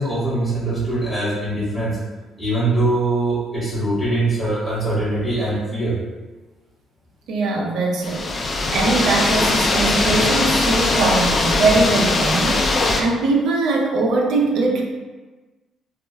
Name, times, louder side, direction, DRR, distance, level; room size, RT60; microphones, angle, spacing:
voice 1, 0.0-2.0 2.4-6.0, right 2 dB, 5° right, -10 dB, 1.2 m, -22 dB
voice 2, 7.3-14.8, right 3 dB, 70° right, 0 dB, 0.5 m, -21 dB
sound 1, 8.0-13.0, left 2 dB, 35° left, 0.3 m, -20 dB
4.2 x 2.0 x 2.2 m, 1.3 s
cardioid pair, 110°, 0 cm